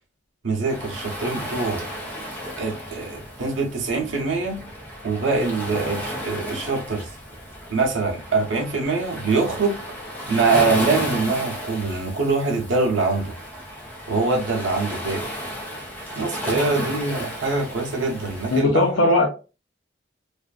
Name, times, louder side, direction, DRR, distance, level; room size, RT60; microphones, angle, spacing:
voice 1, 0.4-1.8 2.6-4.6 5.0-7.1 7.7-9.8 10.3-13.4 14.1-15.2 16.2-19.1, right 3 dB, 85° right, 0.6 m, -24 dB
Waves surf, 0.6-18.6, equal, 10° left, 0.7 m, -33 dB
voice 2, 18.5-19.3, left 2 dB, 75° left, 0.5 m, -18 dB
2.5 x 2.3 x 2.3 m
head